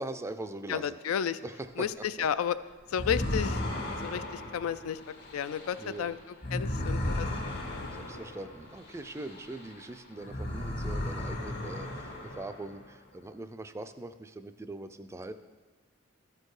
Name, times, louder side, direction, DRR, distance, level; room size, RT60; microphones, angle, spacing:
voice 1, 0.0-1.0 1.4-1.9 2.2-2.3 5.8-6.1 7.9-15.3, right 2 dB, 15° right, 10 dB, 0.3 m, -41 dB
voice 2, 0.7-1.4 1.8-2.6 2.9-3.6 4.0-5.0 5.3-6.2 6.5-7.3 7.7-7.9, left 8 dB, 85° left, 14 dB, 0.3 m, -32 dB
sound 1, 2.9-9.8 10.2-12.9, left 1 dB, 50° left, 1.4 m, -35 dB
13.0 x 4.4 x 4.8 m, 1.3 s
head